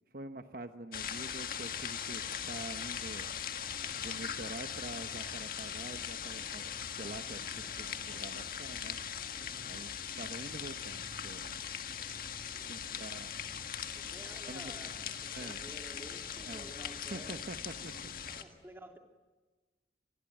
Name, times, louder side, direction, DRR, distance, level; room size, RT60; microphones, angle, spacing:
voice 1, 0.1-3.3 3.9-9.0 9.6-11.5 12.6-13.3 14.5-14.9 15.3-15.6 16.5-16.7 17.1-17.9, right 2 dB, 55° right, 8 dB, 1.1 m, -46 dB
sound 1, 0.9-18.4, left 8 dB, 50° left, 1.8 m, -40 dB
voice 2, 3.8-4.4 7.9-8.4 9.4-9.7 12.3-12.9 13.8-17.4 17.7-17.8 18.3-19.0, equal, 15° right, 4 dB, 2.7 m, -53 dB
26.5 x 20.5 x 9.2 m, 1.3 s
head